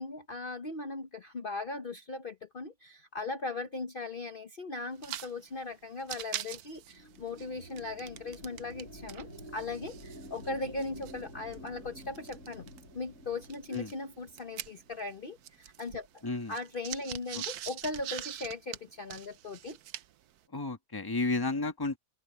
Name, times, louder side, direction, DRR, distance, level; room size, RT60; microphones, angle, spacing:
voice 1, 0.0-16.1 16.5-19.8, left 3 dB, 40° left, 1.2 m, -38 dB
sound 1, 4.9-5.3 5.6-5.7 6.0-8.8 9.1-12.8 13.4-15.1 15.4-20.2, right 12 dB, 75° right, 1.2 m, -43 dB
sound 2, 6.7-15.3, right 1 dB, 60° left, 6.2 m, -50 dB
voice 2, 16.2-16.5 17.3-17.4 20.5-22.0, left 3 dB, 15° left, 1.5 m, -32 dB
omnidirectional pair, 1.6 m